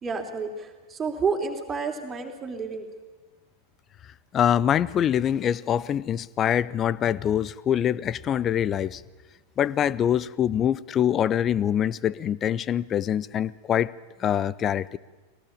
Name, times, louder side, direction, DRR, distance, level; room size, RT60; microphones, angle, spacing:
voice 1, 0.0-2.9, right 5 dB, 20° right, 3 dB, 3.3 m, -30 dB
voice 2, 4.3-9.0 9.6-13.9 14.2-15.0, left 9 dB, 30° left, 20 dB, 0.6 m, -24 dB
21.0 x 18.0 x 8.7 m, 1.3 s
figure-of-eight pair, 90°, 0 cm